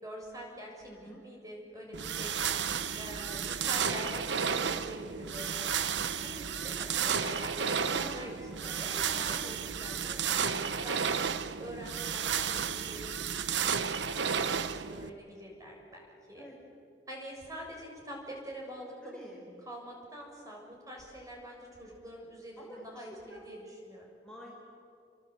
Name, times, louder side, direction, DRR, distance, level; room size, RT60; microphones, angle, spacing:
voice 1, 0.0-0.9 1.2-2.3 3.0-5.7 6.6-8.4 8.8-11.2 11.6-13.3 13.6-16.5 17.1-19.2 19.7-23.6 23.8-24.1, equal, 20° right, -1 dB, 7.1 m, -45 dB
voice 2, 0.9-1.2 6.2-6.4 7.1-7.5 7.8-9.3 16.3-16.5 19.0-19.5 22.6-23.4 24.2-24.5, equal, 5° left, -4 dB, 4.5 m, -48 dB
sound 1, 1.9-15.1, right 7 dB, 80° right, 1.0 m, -32 dB
30.0 x 24.0 x 8.0 m, 2.5 s
head